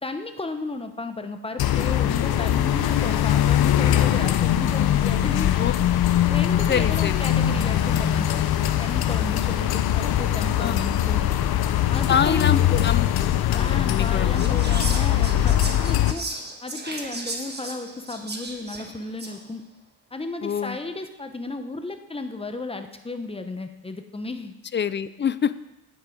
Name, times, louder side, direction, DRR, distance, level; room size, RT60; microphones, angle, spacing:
voice 1, 0.0-5.5 6.3-8.4 8.8-11.3 11.9-12.8 13.5-15.6 15.8-16.3 16.6-19.6 20.1-24.5, left 3 dB, 15° left, 7 dB, 0.9 m, -34 dB
sound 1, 1.6-16.1, left 11 dB, 70° left, 0.7 m, -21 dB
voice 2, 6.7-7.2 10.6-10.9 12.1-14.6 20.4-20.8 24.7-25.6, left 7 dB, 30° left, 15 dB, 0.4 m, -26 dB
Whispering, 14.3-19.5, right 2 dB, 25° right, 1.5 m, -35 dB
9.5 x 7.9 x 5.1 m, 0.98 s
cardioid pair, 100°, 39 cm